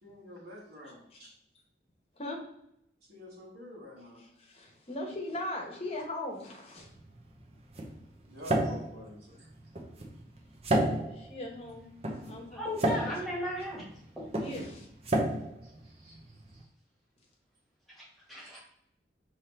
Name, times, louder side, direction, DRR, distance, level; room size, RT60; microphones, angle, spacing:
voice 1, 0.0-1.3 3.1-4.2 8.2-9.5 15.6-16.7, left 1 dB, 65° right, -6 dB, 1.7 m, -49 dB
voice 2, 4.4-6.9 11.1-11.9 12.2-12.8 14.4-14.9, left 1 dB, 35° left, 0 dB, 1.0 m, -39 dB
sound 1, 6.8-16.6, right 1 dB, 35° right, 0.7 m, -33 dB
voice 3, 12.5-13.8 14.2-14.3 17.9-18.6, left 1 dB, ahead, -6 dB, 1.5 m, -36 dB
5.4 x 2.9 x 3.3 m, 0.73 s
head